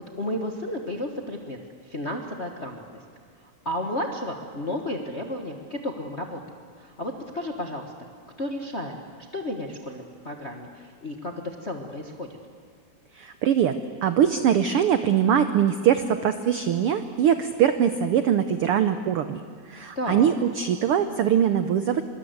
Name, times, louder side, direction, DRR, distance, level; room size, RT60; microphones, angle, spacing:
voice 1, 0.0-2.8 3.4-6.4 6.8-7.9 8.4-9.0 9.3-12.3 19.9-20.3, left 1 dB, 40° left, 3 dB, 0.9 m, -32 dB
voice 2, 13.1-13.7 14.0-19.4 19.7-22.0, right 9 dB, 85° right, 10 dB, 1.2 m, -22 dB
24.5 x 23.5 x 8.0 m, 2.1 s
omnidirectional pair, 3.7 m